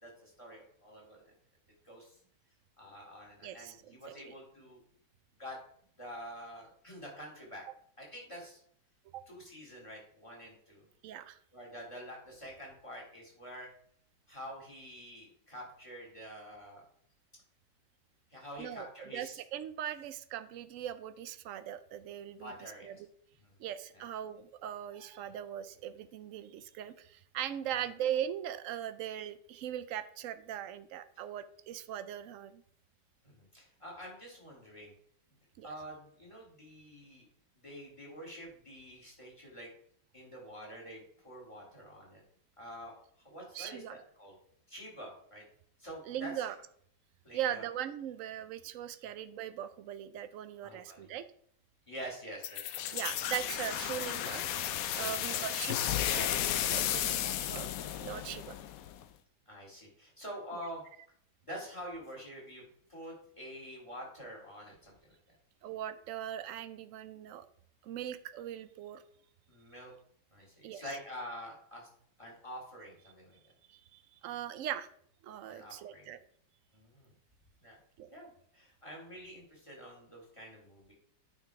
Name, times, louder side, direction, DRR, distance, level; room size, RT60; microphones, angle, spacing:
voice 1, 0.0-1.3 1.8-2.1 2.8-4.8 5.4-5.6 6.0-7.6 8.0-8.6 9.3-10.9 11.5-13.7 14.3-16.8 18.3-19.4 22.4-23.0 23.4-23.5 23.9-24.0 33.2-34.9 35.6-37.3 37.6-39.7 40.1-42.2 42.6-43.0 43.2-44.4 44.7-45.4 45.8-46.4 47.2-47.6 50.6-51.1 51.9-52.9 54.8-55.5 59.5-60.8 61.4-62.6 62.9-65.0 69.5-69.9 70.3-71.9 72.2-73.3 75.5-76.1 76.7-77.1 77.6-77.7 78.1-80.9, equal, 15° left, -1 dB, 2.6 m, -47 dB
voice 2, 3.4-4.0 4.3-4.4 9.1-9.2 11.0-11.4 18.6-23.0 23.6-32.6 35.6-35.7 43.5-44.0 46.1-46.5 47.3-51.2 52.9-54.5 54.9-55.8 56.1-57.7 58.0-58.6 65.6-67.5 67.8-69.0 70.6-70.8 73.7-74.9 75.2-76.2 78.0-78.1, right 10 dB, 70° right, 13 dB, 0.7 m, -40 dB
sound 1, 52.4-59.0, left 11 dB, 70° left, 0.9 m, -34 dB
9.1 x 4.0 x 4.7 m, 0.63 s
omnidirectional pair, 1.9 m